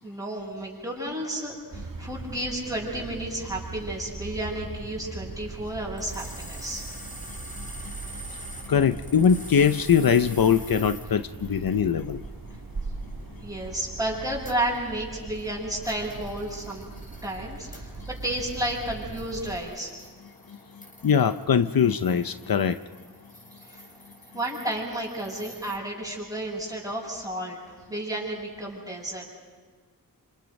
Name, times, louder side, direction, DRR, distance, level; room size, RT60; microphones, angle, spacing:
voice 1, 0.0-6.9 13.4-16.9 17.2-19.9 23.5-23.8 24.3-27.6 27.9-29.3, right 1 dB, 10° right, -8 dB, 6.4 m, -32 dB
sound 1, 1.7-19.6, right 3 dB, 70° right, 1.6 m, -40 dB
sound 2, 6.0-25.8, equal, 25° left, 4.8 m, -47 dB
voice 2, 8.7-12.2 21.0-22.8, left 7 dB, 80° left, 12 dB, 0.7 m, -22 dB
28.5 x 26.5 x 5.3 m, 1.4 s
wide cardioid pair, 60°, 35 cm